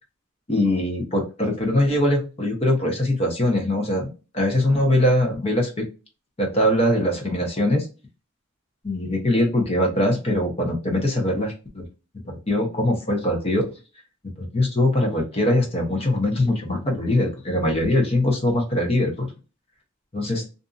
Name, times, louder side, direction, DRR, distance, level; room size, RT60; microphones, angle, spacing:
voice 1, 0.5-5.9 6.4-7.9 8.8-11.9 12.2-13.7 14.4-19.3 20.1-20.5, left 1 dB, 30° left, 1 dB, 0.8 m, -22 dB
2.6 x 2.5 x 2.3 m, 0.32 s
head